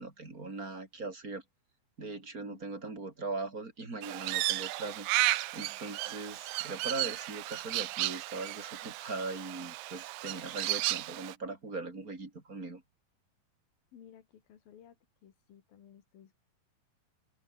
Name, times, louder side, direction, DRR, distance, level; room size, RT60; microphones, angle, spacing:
voice 1, 0.0-1.4 2.0-12.8, right 3 dB, 25° right, 4.6 m, -40 dB
voice 2, 2.4-2.9 13.9-15.0 15.2-16.3, left 9 dB, 85° left, 4.1 m, -56 dB
Crow, 4.0-11.4, right 17 dB, 90° right, 2.5 m, -34 dB
open air
omnidirectional pair, 4.0 m